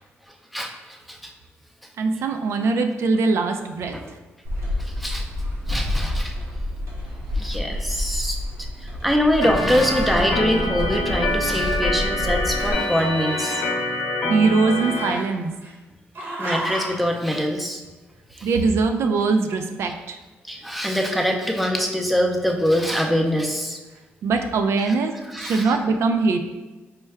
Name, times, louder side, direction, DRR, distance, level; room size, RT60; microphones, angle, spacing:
voice 1, 2.0-4.0 14.3-15.5 18.4-20.2 24.2-26.4, right 4 dB, 70° right, 5 dB, 0.3 m, -21 dB
sound 1, 4.4-12.7, left 1 dB, 90° right, 1.0 m, -28 dB
voice 2, 5.7-6.3 7.4-8.4 9.0-13.6 16.4-17.8 18.4-18.5 20.5-23.8 25.3-25.7, equal, ahead, 2 dB, 0.4 m, -23 dB
Organ, 9.4-15.1, left 2 dB, 70° left, 0.7 m, -26 dB
Growling, 11.1-12.2 12.4-13.9 14.7-15.7 16.1-17.1, right 1 dB, 50° right, 0.8 m, -34 dB
4.5 x 2.2 x 3.3 m, 1.2 s
cardioid pair, 100°, 5 cm